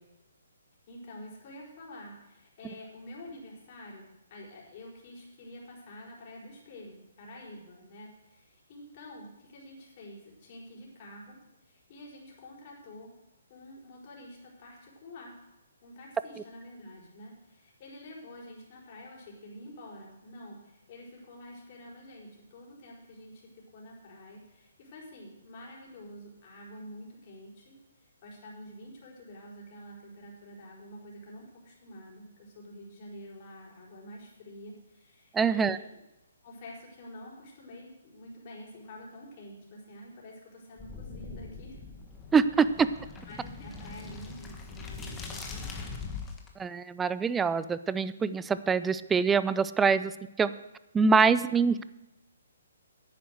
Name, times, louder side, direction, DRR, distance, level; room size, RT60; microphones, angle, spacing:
voice 1, 0.9-13.1 13.5-15.3 15.8-36.0 36.4-41.8 42.6-42.7 43.3-46.1, left 1 dB, 40° left, -2 dB, 4.6 m, -48 dB
voice 2, 35.3-35.8 42.3-42.9 46.6-50.1 50.4-50.5 50.9-51.8, right 5 dB, 10° right, 15 dB, 0.4 m, -24 dB
sound 1, 40.8-46.5, left 4 dB, 15° left, 1.4 m, -42 dB
10.5 x 9.3 x 6.5 m, 0.95 s
hypercardioid pair, 150°, 0 cm